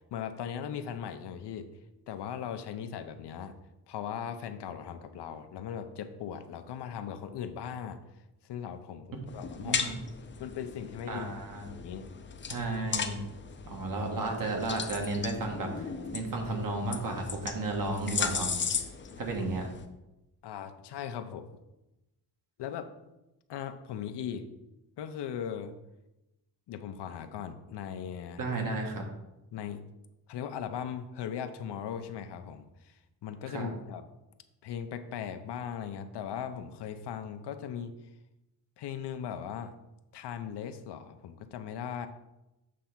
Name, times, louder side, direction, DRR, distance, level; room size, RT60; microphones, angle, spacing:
voice 1, 0.1-1.7 2.1-3.5 3.9-8.0 8.4-10.0 10.4-11.3 11.6-12.1 19.3-19.4 20.4-21.6 22.6-22.9 23.5-24.5 25.0-25.7 26.7-28.4 29.5-29.8 30.3-34.0 34.6-37.9 38.8-39.7 40.1-42.1, left 8 dB, 75° left, 9 dB, 0.7 m, -38 dB
sound 1, 9.3-19.8, left 6 dB, 30° left, 0.5 m, -37 dB
voice 2, 9.6-10.0 11.1-11.6 12.5-13.2 13.7-18.5 19.2-19.7 28.4-29.1 33.5-33.7, right 2 dB, 55° right, 2 dB, 1.4 m, -33 dB
7.4 x 3.4 x 5.8 m, 0.96 s
wide cardioid pair, 140°, 41 cm